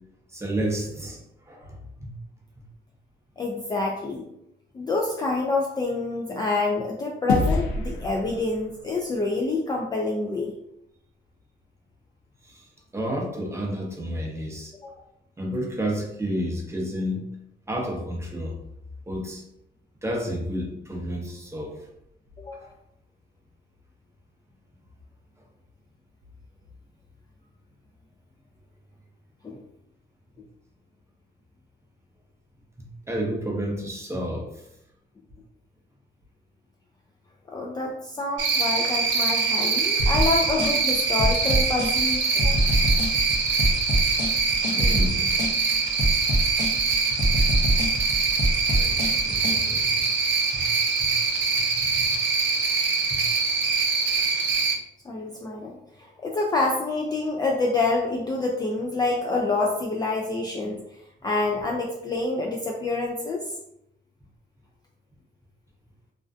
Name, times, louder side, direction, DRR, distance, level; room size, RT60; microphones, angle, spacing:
voice 1, 0.3-1.2 1.5-2.1 12.4-12.7 12.9-14.7 15.4-17.2 17.7-18.6 19.1-19.4 20.0-21.8 32.8-34.5 44.7-45.3 47.1-47.2 48.7-50.1 50.5-50.7 51.0-51.1 51.8-52.1 53.1-53.2, equal, 15° right, -1 dB, 0.7 m, -31 dB
voice 2, 3.4-4.2 4.7-10.5 14.8-14.9 22.4-22.7 29.4-29.6 37.5-42.7 55.0-60.8 61.2-63.4, left 3 dB, 20° left, -1 dB, 0.3 m, -27 dB
sound 1, 7.3-9.9, left 3 dB, 90° left, 0.4 m, -28 dB
Cricket, 38.4-54.7, right 4 dB, 70° right, 0.5 m, -24 dB
sound 2, 40.0-49.6, equal, 60° left, 0.7 m, -25 dB
2.4 x 2.1 x 2.4 m, 0.80 s
cardioid pair, 90°, 20 cm